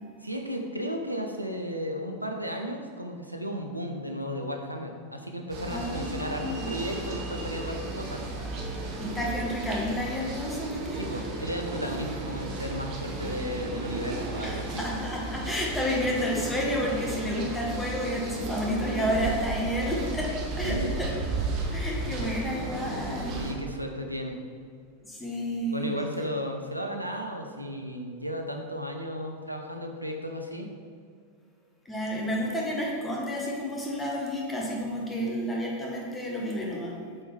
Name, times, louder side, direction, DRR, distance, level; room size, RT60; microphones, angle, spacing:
voice 1, 0.2-8.2 10.9-14.8 20.6-21.0 23.4-24.4 25.7-30.7, equal, 90° right, 3 dB, 0.6 m, -34 dB
sound 1, 5.5-23.5, right 2 dB, 40° right, 1.1 m, -34 dB
voice 2, 5.7-6.7 9.0-11.0 14.4-21.1 21.7-23.4 25.0-25.9 31.8-37.0, equal, 10° left, -3 dB, 1.2 m, -30 dB
7.1 x 4.4 x 3.3 m, 2.2 s
figure-of-eight pair, 90°, 0 cm